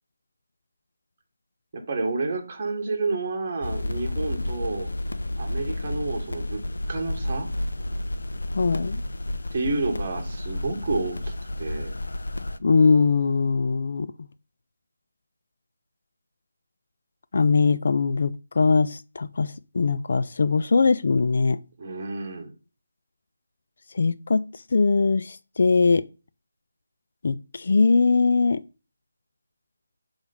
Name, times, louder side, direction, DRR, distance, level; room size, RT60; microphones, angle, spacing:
voice 1, 1.7-4.9 5.4-6.6 6.9-7.5 9.5-11.9 21.8-22.5, right 3 dB, 30° right, 1.5 m, -30 dB
sound 1, 3.6-12.6, left 1 dB, 80° left, 0.6 m, -31 dB
voice 2, 8.5-9.0 12.6-14.1 17.3-21.6 23.9-26.0 27.2-28.6, left 4 dB, 50° left, 0.3 m, -21 dB
6.1 x 3.4 x 5.5 m
figure-of-eight pair, 170°, 0 cm